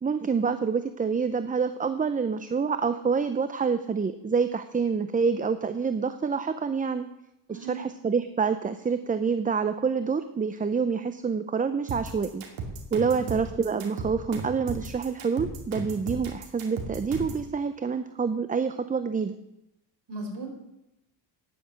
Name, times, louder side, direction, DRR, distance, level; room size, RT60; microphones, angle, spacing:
voice 1, 0.0-7.1 7.5-12.4 12.9-19.4, right 5 dB, 20° right, 11 dB, 0.5 m, -27 dB
voice 2, 7.5-7.9 13.1-13.4 20.1-20.5, right 2 dB, 55° right, 2 dB, 4.6 m, -37 dB
sound 1, 11.9-17.5, right 4 dB, 80° right, 2.7 m, -36 dB
10.0 x 9.2 x 7.6 m, 0.88 s
cardioid pair, 105°, 47 cm